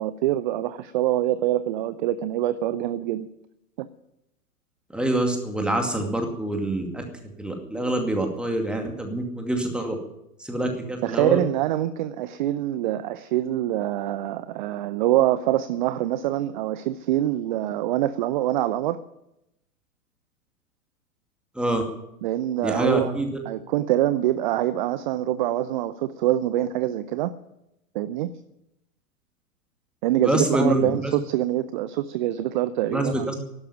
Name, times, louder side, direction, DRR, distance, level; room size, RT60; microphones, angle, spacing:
voice 1, 0.0-3.3 3.8-3.9 11.0-19.0 22.2-23.1 23.5-27.3 27.9-28.3 30.0-33.3, right 13 dB, 35° right, 14 dB, 0.6 m, -25 dB
voice 2, 4.9-7.1 7.4-10.0 10.4-11.4 21.5-21.8 22.6-23.3 30.2-31.2 32.9-33.3, right 1 dB, ahead, 3 dB, 2.3 m, -25 dB
12.0 x 11.5 x 9.2 m, 0.86 s
figure-of-eight pair, 105°, 45 cm